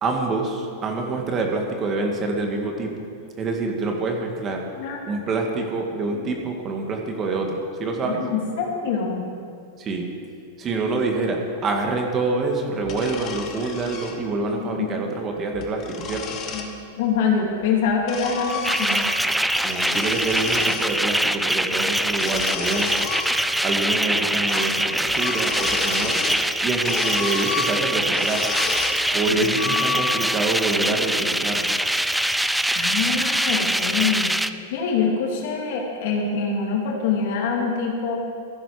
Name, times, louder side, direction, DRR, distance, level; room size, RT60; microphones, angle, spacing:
voice 1, 0.0-2.9 3.4-4.6 5.1-8.2 9.8-10.0 10.6-16.4 19.6-23.1 23.6-26.2 26.6-28.5 29.1-31.7, right 3 dB, 25° right, 2 dB, 1.7 m, -26 dB
voice 2, 8.0-9.3 14.6-14.9 16.5-16.7 17.0-19.0 29.3-29.9 32.7-38.2, left 5 dB, 65° left, 0 dB, 2.7 m, -25 dB
sound 1, 12.8-14.2 15.4-16.7 17.6-19.2 19.5-20.9 22.1-23.8 24.0-24.1 24.5-24.8 25.1-26.5 26.8-29.0 29.4-30.4, left 6 dB, 35° left, 1.4 m, -31 dB
sound 2, 18.5-34.5, right 1 dB, ahead, 0.4 m, -23 dB
14.5 x 11.0 x 5.0 m, 2.4 s
supercardioid pair, 135°, 0 cm